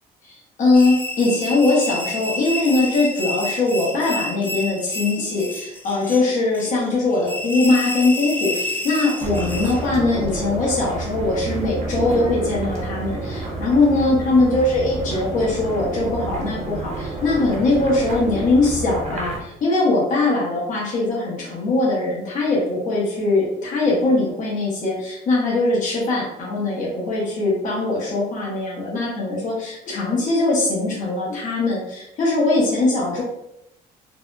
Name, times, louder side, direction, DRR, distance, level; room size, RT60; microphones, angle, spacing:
voice 1, 0.2-33.2, left 2 dB, 50° left, -5 dB, 1.1 m, -21 dB
sound 1, 0.7-9.8, left 2 dB, 10° left, 0.5 m, -30 dB
sound 2, 9.2-19.4, right 2 dB, 40° right, 1.0 m, -29 dB
3.3 x 2.6 x 2.3 m, 0.82 s
cardioid pair, 110°, 17 cm